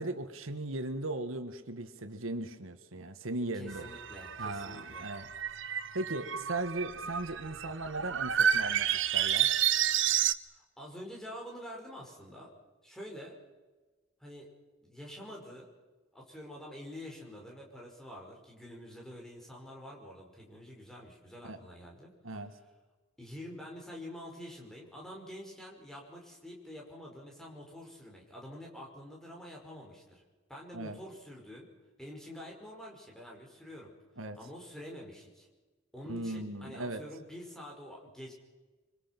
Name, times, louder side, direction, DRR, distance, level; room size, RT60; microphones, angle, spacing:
voice 1, 0.0-3.9 4.4-5.3 5.9-9.5 21.4-21.6 22.2-22.5 30.7-31.0 34.2-34.4 36.1-37.0, right 2 dB, 85° right, 9 dB, 1.7 m, -38 dB
voice 2, 3.5-5.1 10.5-12.5 12.8-13.4 14.2-14.5 14.8-15.7 16.1-22.1 23.2-30.2 30.5-31.7 32.0-33.9 34.3-35.5 35.9-38.3, equal, ahead, -2 dB, 5.4 m, -47 dB
sound 1, 3.7-10.3, right 9 dB, 70° right, 0.9 m, -31 dB
26.0 x 24.5 x 6.1 m, 1.2 s
head